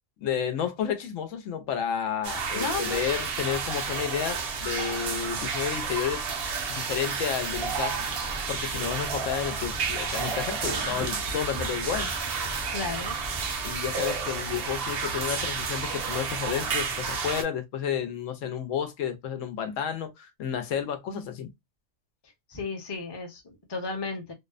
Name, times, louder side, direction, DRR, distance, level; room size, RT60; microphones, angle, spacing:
voice 1, 0.2-6.3 6.7-8.1 8.5-12.1 13.6-21.5, left 8 dB, 85° left, 0.9 m, -31 dB
sound 1, 2.2-17.4, right 5 dB, 60° right, 0.7 m, -31 dB
voice 2, 2.5-3.0 12.7-13.2 22.5-24.3, left 4 dB, 25° left, 0.6 m, -33 dB
sound 2, 7.5-13.5, right 1 dB, 30° right, 0.5 m, -40 dB
2.7 x 2.0 x 2.3 m
omnidirectional pair, 1.3 m